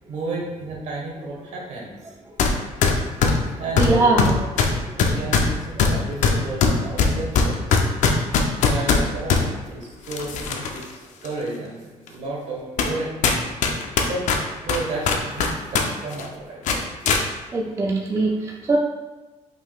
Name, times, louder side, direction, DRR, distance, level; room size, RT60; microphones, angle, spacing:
voice 1, 0.1-2.1 3.6-4.5 4.7-7.7 8.3-8.4 8.7-10.9 11.2-13.4 14.1-16.8, right 2 dB, 65° right, -3 dB, 1.5 m, -32 dB
sound 1, 2.4-2.5 2.8-9.4 10.1-10.8 11.3-11.4 12.1-12.2 12.8-13.0 13.2-15.9 16.1-16.3 16.7-17.2, left 5 dB, 75° left, 0.6 m, -20 dB
voice 2, 3.8-4.3 4.9-5.3 17.5-18.8, right 3 dB, 25° right, -1 dB, 0.4 m, -22 dB
5.7 x 3.9 x 2.4 m, 1.1 s
cardioid pair, 130°, 13 cm